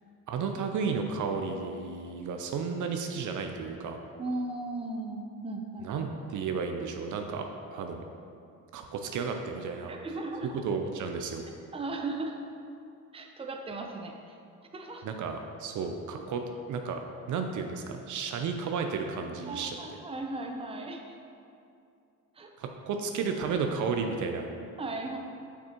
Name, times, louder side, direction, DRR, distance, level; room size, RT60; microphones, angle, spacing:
voice 1, 0.3-4.0 5.8-8.0 8.7-9.9 10.6-11.4 15.0-17.0 17.3-19.8 22.6-24.5, right 5 dB, 55° right, 4 dB, 0.6 m, -33 dB
voice 2, 4.2-5.9 9.9-10.6 11.7-12.4 13.1-14.4 14.7-15.2 19.5-21.2 22.4-22.5 24.8-25.2, right 2 dB, 15° right, 3 dB, 0.6 m, -36 dB
5.9 x 5.9 x 3.0 m, 2.5 s
supercardioid pair, 75°, 36 cm